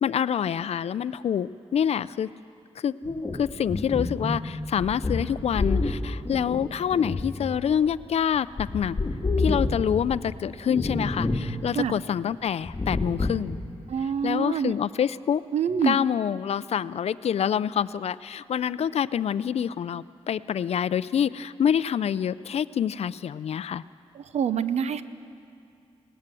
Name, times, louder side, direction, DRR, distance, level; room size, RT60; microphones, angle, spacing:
voice 1, 0.0-2.3 2.8-2.9 3.3-9.0 9.4-13.6 14.2-15.4 15.8-23.8, left 8 dB, 70° left, 17 dB, 0.5 m, -26 dB
sound 1, 3.0-8.0 8.3-10.2 10.7-11.5 11.8-11.9 12.6-13.5, left 3 dB, 30° left, 2.1 m, -28 dB
voice 2, 13.9-14.7 15.5-16.0 24.2-25.0, right 7 dB, 80° right, 13 dB, 0.7 m, -26 dB
19.5 x 18.0 x 7.6 m, 2.4 s
cardioid pair, 90°, 11 cm